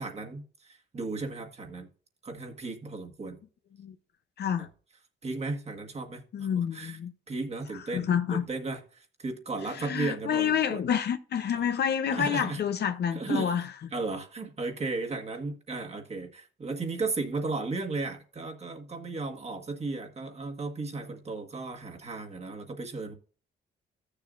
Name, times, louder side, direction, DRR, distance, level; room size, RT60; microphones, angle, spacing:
voice 1, 0.0-1.9 2.2-3.4 4.6-4.7 5.2-7.0 7.3-10.8 11.5-11.6 12.1-12.6 13.1-13.6 13.9-23.1, right 3 dB, 30° right, 1.7 m, -35 dB
voice 2, 6.3-7.1 7.9-8.4 9.8-13.6, left 8 dB, 55° left, 0.8 m, -28 dB
14.5 x 6.8 x 2.6 m
cardioid pair, 90°, 20 cm